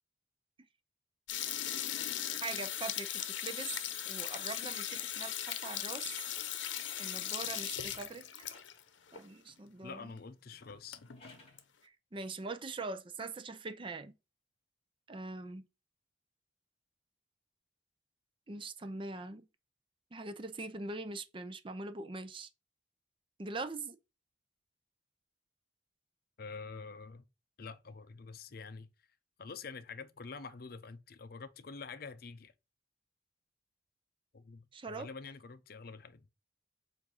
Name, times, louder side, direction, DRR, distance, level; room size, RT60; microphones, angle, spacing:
sound 1, 1.3-8.8 9.1-9.2 9.5-9.6 10.2-10.3 10.5-11.6, left 11 dB, 85° left, 0.7 m, -38 dB
voice 1, 2.4-3.8 4.0-6.1 7.0-8.5 9.1-10.1 11.8-14.1 15.1-15.7 18.5-19.5 20.1-22.5 23.4-24.0 34.7-35.1, right 3 dB, 30° right, 0.5 m, -42 dB
sound 2, 8.0-9.4 10.8-11.7, left 3 dB, 35° left, 2.1 m, -65 dB
voice 2, 9.8-11.0 26.4-27.2 27.6-28.9 29.4-32.5 34.3-36.3, left 4 dB, 55° left, 0.6 m, -47 dB
7.7 x 2.6 x 5.4 m
head